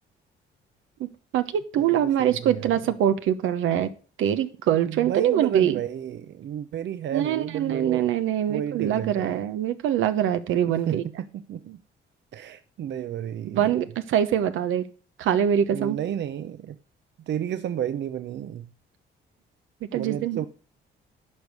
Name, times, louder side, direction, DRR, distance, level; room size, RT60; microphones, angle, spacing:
voice 1, 1.0-3.9 4.2-5.8 7.1-11.0 13.6-14.8 15.2-16.0 19.9-20.5, right 10 dB, 85° right, 1.0 m, -24 dB
voice 2, 1.8-2.8 4.9-8.1 8.5-9.4 10.6-11.8 12.3-13.7 15.7-16.8 17.2-18.7 19.9-20.5, right 10 dB, 65° right, 0.7 m, -32 dB
11.0 x 5.4 x 6.7 m
cardioid pair, 90°, 20 cm